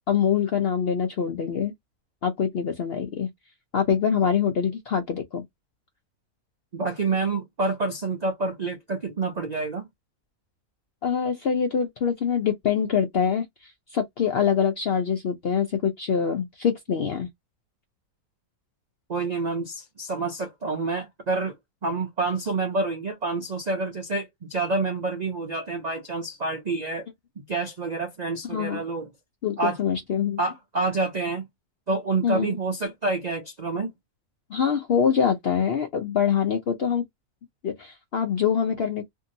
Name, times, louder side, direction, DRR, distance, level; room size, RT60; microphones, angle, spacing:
voice 1, 0.1-1.7 2.2-3.3 3.7-5.4 11.0-17.3 28.5-28.8 29.4-30.4 32.2-32.6 34.5-37.0 37.6-39.1, left 7 dB, 70° left, 0.5 m, -24 dB
voice 2, 6.7-9.9 19.1-21.6 21.8-27.1 27.4-29.1 29.6-29.8 30.4-31.5 31.9-33.9, right 3 dB, 85° right, 0.3 m, -28 dB
2.7 x 2.7 x 2.6 m
omnidirectional pair, 1.6 m